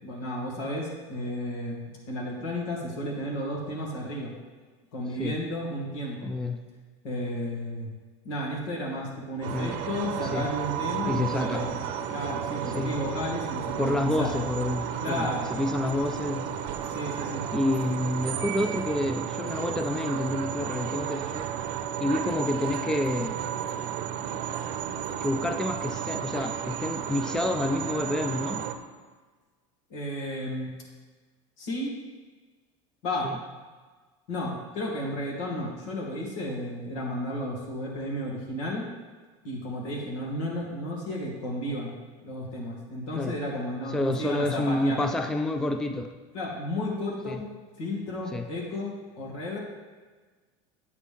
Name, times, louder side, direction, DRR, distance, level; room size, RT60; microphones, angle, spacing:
voice 1, 0.0-4.3 4.9-6.3 7.0-7.9 8.2-11.8 12.1-14.3 15.0-15.5 16.9-17.4 29.9-30.7 31.6-31.9 33.0-33.3 34.3-38.9 39.4-41.9 42.2-45.0 46.3-47.5 47.8-49.6, left 1 dB, 80° left, -3 dB, 2.6 m, -33 dB
voice 2, 6.2-6.6 9.5-9.8 10.3-10.5 11.0-11.7 12.7-13.0 13.8-16.6 17.5-21.5 22.0-23.5 25.2-28.6 33.2-33.4 43.1-43.4 43.9-46.1 47.3-47.4 48.3-48.5, left 1 dB, 5° left, 7 dB, 0.3 m, -29 dB
sound 1, 9.4-28.7, right 9 dB, 60° right, 0.7 m, -33 dB
8.3 x 7.2 x 3.5 m, 1.4 s
supercardioid pair, 130°, 16 cm